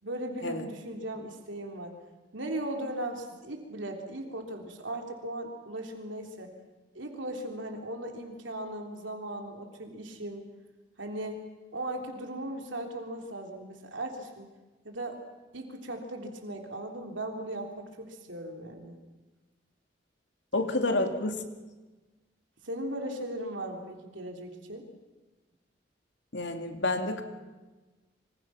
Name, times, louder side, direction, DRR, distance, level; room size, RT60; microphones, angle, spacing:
voice 1, 0.0-1.9 2.3-6.5 7.0-10.4 11.0-11.4 11.7-14.5 14.8-15.2 15.5-19.0 20.9-21.1 22.6-24.9, right 1 dB, 90° right, 3 dB, 3.6 m, -37 dB
voice 2, 20.5-21.3 26.3-27.2, left 2 dB, 75° left, 6 dB, 2.6 m, -29 dB
27.0 x 25.5 x 5.9 m, 1.2 s
head